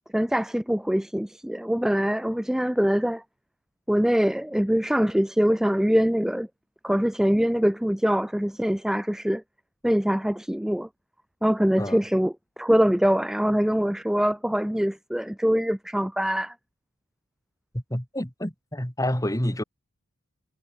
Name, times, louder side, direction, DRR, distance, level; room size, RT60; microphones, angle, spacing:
voice 1, 0.1-3.2 3.9-6.5 6.8-9.4 9.8-10.9 11.4-16.5, equal, ahead, 0.3 m, -23 dB
voice 2, 17.7-19.6, left 1 dB, 15° left, 2.3 m, -28 dB
head